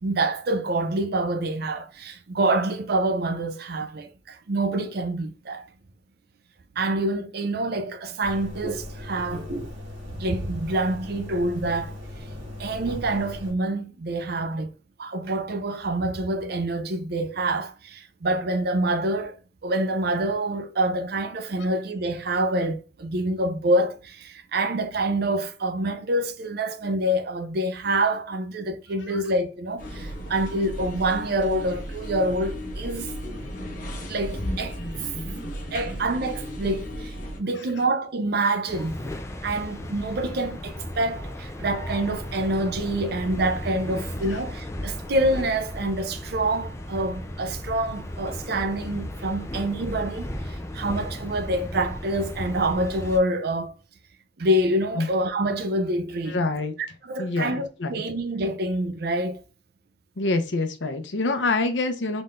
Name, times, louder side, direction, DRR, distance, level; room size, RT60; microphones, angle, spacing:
voice 1, 0.0-5.7 6.8-9.5 10.2-11.9 12.6-14.7 15.0-19.4 19.6-33.1 34.1-34.8 35.7-39.0 39.4-53.7 54.4-56.4 57.0-59.4, right 1 dB, 55° right, 0.5 m, -26 dB
sound 1, 8.2-13.5, left 1 dB, 80° right, 2.0 m, -37 dB
sound 2, 29.8-37.4, equal, 45° left, 1.0 m, -34 dB
sound 3, 38.7-53.2, left 1 dB, 15° left, 0.5 m, -35 dB
voice 2, 56.3-56.7 57.2-58.0 60.2-62.2, left 3 dB, 75° left, 0.8 m, -26 dB
4.0 x 3.7 x 2.5 m
head